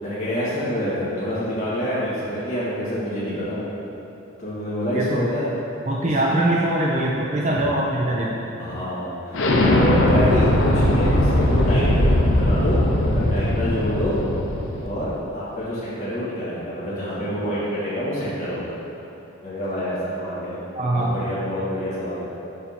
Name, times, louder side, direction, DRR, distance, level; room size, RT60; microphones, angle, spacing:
voice 1, 0.0-3.6 4.4-5.5 6.0-6.2 7.5-7.7 8.6-14.2 14.8-18.8 19.4-20.6 20.9-22.3, equal, 35° left, -11 dB, 1.3 m, -27 dB
voice 2, 4.9-5.3 5.9-8.4 20.8-21.2, right 1 dB, 35° right, -4 dB, 0.4 m, -22 dB
Explosion, 9.3-14.9, left 1 dB, 70° left, 0.7 m, -19 dB
7.1 x 2.7 x 5.6 m, 3.0 s
head